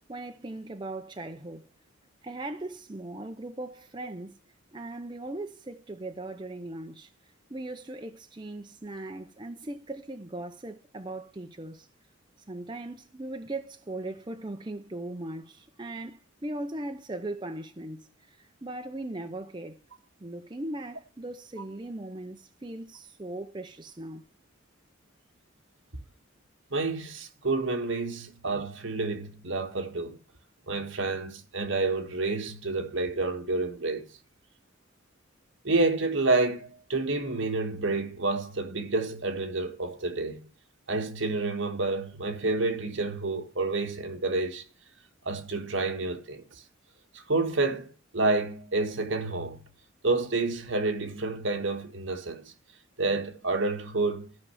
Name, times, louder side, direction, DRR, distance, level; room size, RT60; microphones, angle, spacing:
voice 1, 0.1-1.7 2.2-4.4 4.7-7.1 7.5-11.9 12.5-19.8 20.2-24.2, right 2 dB, 20° right, 0.6 m, -39 dB
voice 2, 26.7-30.2 30.7-34.0 35.6-40.4 40.9-44.6 45.2-46.6 47.1-49.6 50.0-52.5 53.0-54.3, right 3 dB, 65° right, 1.6 m, -29 dB
13.5 x 5.5 x 7.1 m
head